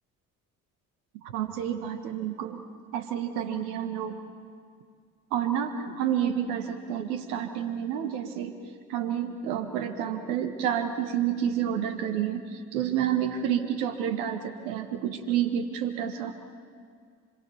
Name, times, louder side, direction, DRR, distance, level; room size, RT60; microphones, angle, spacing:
voice 1, 1.2-2.6 2.9-4.2 5.3-8.5 8.9-16.4, right 9 dB, 75° right, 7 dB, 1.5 m, -29 dB
26.0 x 22.5 x 7.0 m, 2.1 s
hypercardioid pair, 55°, 44 cm